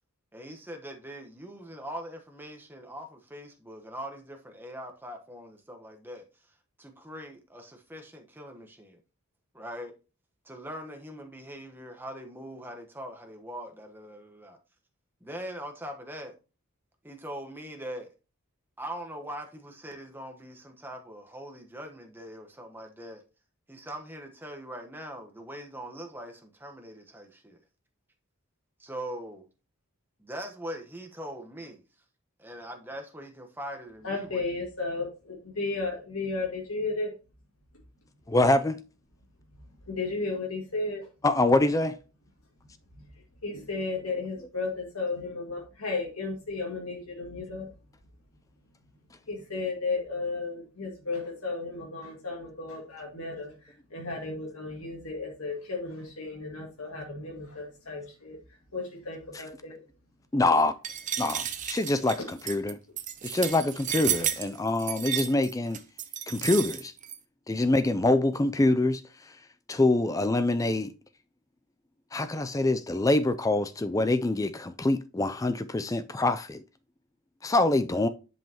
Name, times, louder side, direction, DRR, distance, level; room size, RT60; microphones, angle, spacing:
voice 1, 0.3-6.2 6.8-9.0 9.5-9.9 10.4-14.6 15.2-16.3 17.0-18.1 18.8-23.2 23.7-27.6 28.8-29.4 30.2-31.8 32.4-34.4, equal, 10° right, 1.1 m, -41 dB
voice 2, 34.0-37.1 39.9-41.1 43.4-47.7 49.3-58.4 58.7-59.8, left 3 dB, 75° left, 2.1 m, -34 dB
voice 3, 38.3-38.8 41.2-42.0 60.3-60.7 61.2-62.8 63.2-65.8 66.3-66.9 67.5-69.0 69.7-70.9 72.1-76.6 77.4-78.1, left 2 dB, 15° left, 0.3 m, -25 dB
sound 1, 60.8-67.2, right 10 dB, 35° right, 0.7 m, -32 dB
10.5 x 5.5 x 2.9 m
head